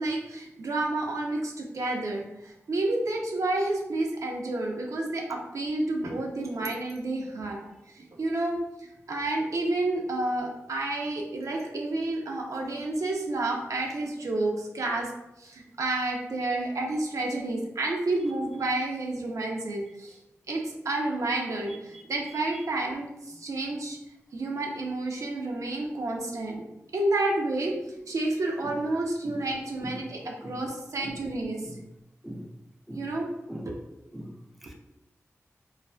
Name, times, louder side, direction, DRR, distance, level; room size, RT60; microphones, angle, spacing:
voice 1, 0.0-7.7 7.9-8.6 9.1-15.1 15.4-20.1 20.5-23.1 23.4-24.0 24.3-26.6 26.9-31.6 33.0-33.3 33.7-33.8, right 2 dB, 75° right, 0 dB, 0.4 m, -30 dB
voice 2, 21.9-22.0 22.5-22.7 28.6-28.7 29.2-29.4 29.8-30.0 30.4-30.6 31.0-31.2 31.6-31.8 32.2-32.5 32.9-33.1 33.5-33.7 34.1-34.4 34.6-34.7, equal, ahead, 1 dB, 0.3 m, -40 dB
2.4 x 2.3 x 2.2 m, 0.89 s
wide cardioid pair, 95°, 6 cm